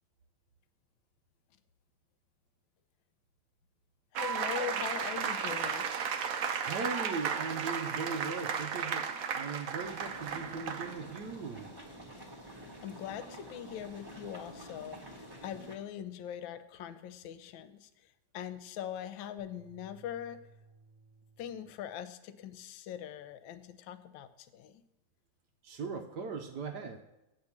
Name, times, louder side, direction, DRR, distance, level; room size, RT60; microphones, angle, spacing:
voice 1, 4.1-6.0 6.4-6.5 12.8-17.9 18.3-20.4 21.4-24.8 25.9-26.1, left 10 dB, 75° left, 11 dB, 1.3 m, -42 dB
sound 1, 4.1-11.2, right 7 dB, 85° right, 0.7 m, -34 dB
voice 2, 6.6-11.7 25.6-27.0, right 4 dB, 70° right, 5 dB, 1.0 m, -39 dB
sound 2, 9.8-15.8, right 1 dB, 15° right, 0.9 m, -49 dB
sound 3, 19.4-21.9, right 3 dB, 35° left, 0.9 m, -60 dB
8.1 x 5.2 x 7.1 m, 0.95 s
omnidirectional pair, 2.4 m